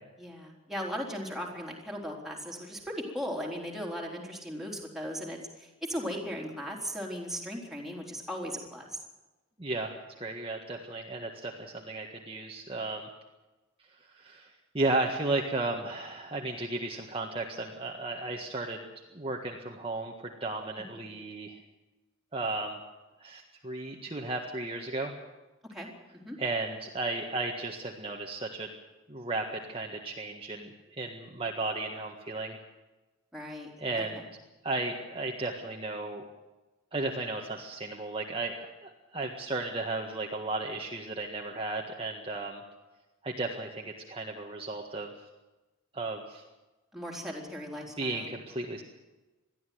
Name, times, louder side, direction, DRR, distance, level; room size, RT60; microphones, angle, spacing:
voice 1, 0.2-9.0 20.9-21.0 25.7-26.4 33.3-33.7 46.9-48.3, equal, ahead, -2 dB, 3.8 m, -37 dB
voice 2, 9.6-13.1 14.1-18.8 19.1-21.6 22.3-22.8 23.2-25.1 26.4-28.7 29.1-32.6 33.8-34.2 34.6-36.2 36.9-42.6 43.2-45.1 45.9-46.4 48.0-48.8, right 2 dB, 25° right, 0 dB, 1.7 m, -34 dB
21.5 x 14.0 x 9.4 m, 1.1 s
head